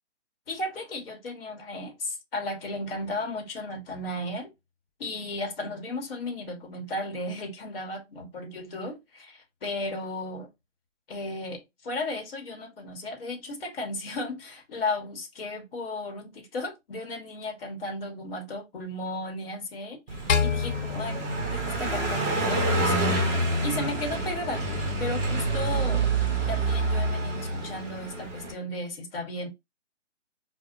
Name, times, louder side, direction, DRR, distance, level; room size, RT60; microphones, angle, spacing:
voice 1, 0.5-4.5 5.0-10.5 11.1-21.3 21.5-23.2 23.6-26.1 26.5-29.5, left 2 dB, 50° left, 1.0 m, -35 dB
Car passing by, 20.1-28.5, right 2 dB, 15° right, 0.8 m, -27 dB
sound 1, 20.3-22.7, left 6 dB, 80° left, 0.6 m, -29 dB
4.7 x 2.1 x 2.3 m
hypercardioid pair, 150°, 37 cm